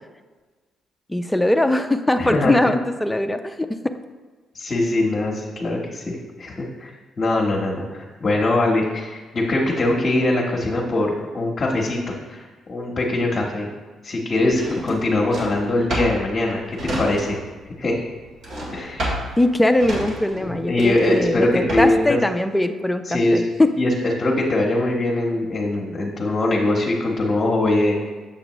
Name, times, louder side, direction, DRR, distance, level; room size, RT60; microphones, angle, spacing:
voice 1, 1.1-3.9 19.4-23.7, left 1 dB, 10° left, 7 dB, 0.5 m, -21 dB
voice 2, 2.2-2.7 4.5-6.9 7.2-12.4 12.7-13.7 14.0-17.4 17.8-18.0 18.7-19.1 20.4-22.2 23.1-23.4 23.8-23.9 24.2-28.1, left 2 dB, 40° left, -4 dB, 1.1 m, -22 dB
Drawer open or close, 14.5-17.6 17.9-22.1, equal, 60° right, 1.9 m, -30 dB
7.1 x 6.6 x 3.0 m, 1.3 s
cardioid pair, 90°, 0 cm